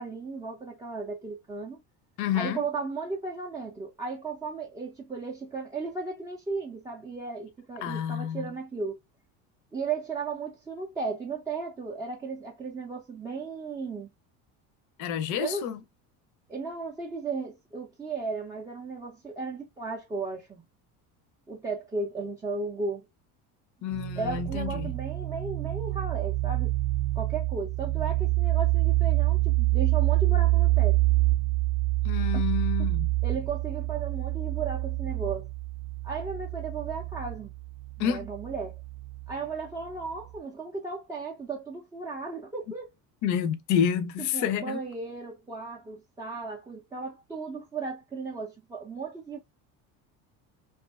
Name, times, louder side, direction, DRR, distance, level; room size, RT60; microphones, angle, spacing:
voice 1, 0.0-1.8 2.3-9.0 9.7-14.1 15.4-15.7 16.5-20.6 21.5-23.1 24.2-26.7 27.2-31.0 33.2-35.5 36.0-37.5 38.0-38.8 39.3-42.9 44.3-49.4, right 4 dB, 10° right, 0.3 m, -35 dB
voice 2, 2.2-2.7 7.8-8.5 15.0-15.8 23.8-24.9 32.0-33.1 38.0-38.3 43.2-44.8, left 9 dB, 55° left, 0.6 m, -29 dB
sound 1, 23.9-39.3, right 19 dB, 75° right, 0.5 m, -27 dB
2.6 x 2.4 x 2.3 m
cardioid pair, 125°, 36 cm